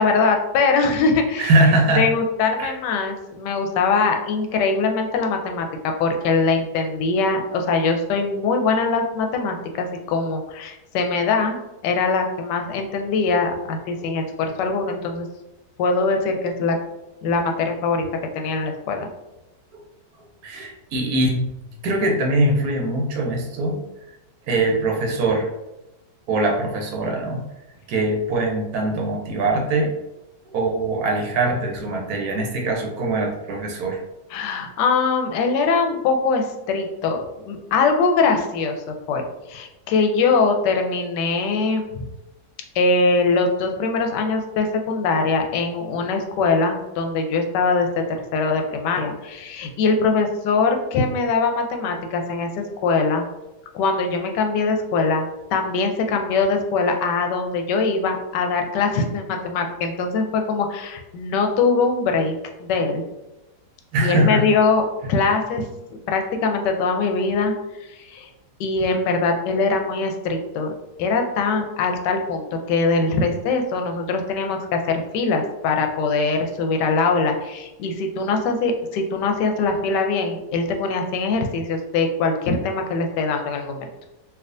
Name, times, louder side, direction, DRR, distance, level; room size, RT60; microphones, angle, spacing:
voice 1, 0.0-1.6 1.9-11.6 11.8-15.3 15.8-16.8 17.2-18.1 18.3-19.1 34.3-42.1 42.7-48.0 48.3-52.5 52.8-53.2 53.7-62.3 62.6-63.0 64.0-65.7 66.1-68.3 68.6-70.7 71.0-83.9, left 4 dB, 90° left, 4 dB, 1.2 m, -22 dB
voice 2, 1.4-2.0 2.6-2.7 14.0-14.1 19.7-19.8 20.4-21.5 21.8-23.8 24.5-25.5 26.3-27.4 27.9-29.9 30.5-34.0 63.9-64.4, right 2 dB, 70° right, 1 dB, 1.1 m, -22 dB
3.4 x 2.7 x 2.5 m, 0.97 s
omnidirectional pair, 1.8 m